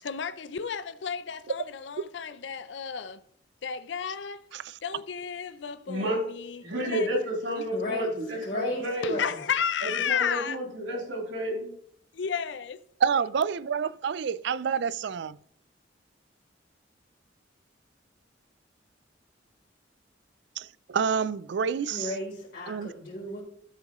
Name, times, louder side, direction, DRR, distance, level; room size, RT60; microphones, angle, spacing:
voice 1, 0.0-3.2 3.6-4.4 4.8-7.1 7.6-7.7 9.0-10.6 12.1-12.8, left 7 dB, 65° left, 0.5 m, -32 dB
voice 2, 5.9-6.2 6.6-9.2 9.9-11.7, equal, 80° right, 3.6 m, -31 dB
voice 3, 7.7-8.1 8.4-9.4 21.9-23.4, left 1 dB, 50° left, 3.1 m, -34 dB
voice 4, 13.0-15.4 20.9-22.1 22.7-22.9, right 6 dB, 65° right, 0.4 m, -28 dB
12.5 x 7.4 x 3.1 m
head